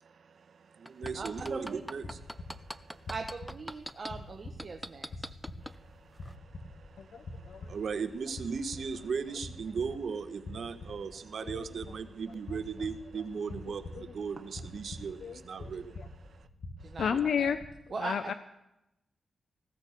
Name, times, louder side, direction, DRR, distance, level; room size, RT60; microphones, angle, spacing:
voice 1, 0.0-3.1 5.6-16.5 17.1-17.2, right 5 dB, 65° right, 1.1 m, -38 dB
sound 1, 0.9-4.1 4.6-5.7 6.2-6.3, equal, ahead, 0.7 m, -40 dB
sound 2, 1.0-17.7, left 2 dB, 60° left, 2.2 m, -47 dB
voice 2, 1.1-1.8 3.1-5.3 16.8-17.5 17.9-18.3, right 4 dB, 50° right, 1.2 m, -40 dB
voice 3, 7.0-7.6 11.5-11.6 15.2-15.7 17.0-17.6 18.0-18.3, left 7 dB, 80° left, 0.6 m, -32 dB
19.0 x 15.5 x 4.4 m
cardioid pair, 70°, 0 cm